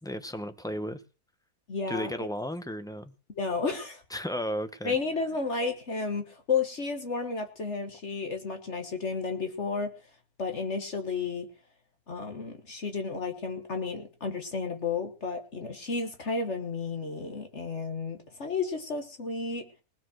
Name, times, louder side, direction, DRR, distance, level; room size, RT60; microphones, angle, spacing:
voice 1, 0.0-1.0 1.9-3.1 4.1-5.0, equal, 5° left, 0.7 m, -34 dB
voice 2, 1.7-2.3 3.3-4.0 4.8-9.9 10.4-11.5 12.1-19.6, left 4 dB, 50° left, 1.7 m, -32 dB
20.0 x 7.0 x 6.3 m
omnidirectional pair, 1.6 m